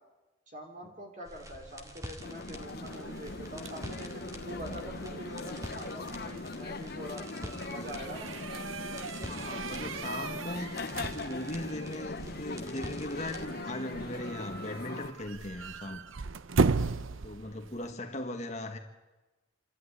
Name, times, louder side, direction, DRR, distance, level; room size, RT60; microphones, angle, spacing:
voice 1, 0.5-8.3, equal, 40° right, 2 dB, 4.4 m, -44 dB
sound 1, 1.3-13.5, equal, 15° right, 2.1 m, -47 dB
sound 2, 2.2-15.1, left 3 dB, 50° left, 0.9 m, -40 dB
sound 3, 2.9-17.9, right 4 dB, 90° right, 0.7 m, -37 dB
voice 2, 9.3-10.8 11.1-16.0 17.2-18.8, left 1 dB, 35° left, 5 dB, 1.6 m, -39 dB
27.0 x 12.5 x 9.9 m, 1.1 s
head